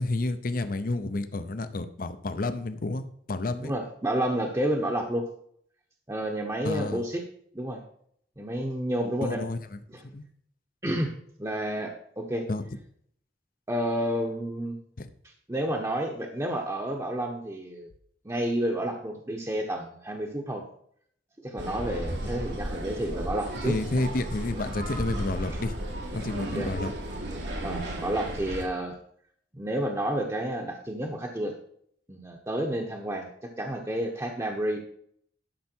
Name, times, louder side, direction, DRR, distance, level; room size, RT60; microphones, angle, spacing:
voice 1, 0.0-3.7 6.6-7.0 9.2-9.8 10.1-10.2 12.5-12.6 15.0-15.1 23.6-25.7 26.1-26.9, left 2 dB, 55° left, 11 dB, 0.8 m, -30 dB
voice 2, 3.6-5.3 6.1-7.2 7.5-7.8 8.4-9.4 10.8-12.5 13.7-14.8 15.5-17.9 18.2-20.6 21.4-23.8 26.5-26.7 27.6-29.0 29.5-31.5 32.1-34.8, right 1 dB, 15° right, 1 dB, 0.9 m, -30 dB
sound 1, 21.6-28.6, right 1 dB, 90° right, 2.4 m, -34 dB
12.0 x 5.8 x 4.5 m, 0.65 s
head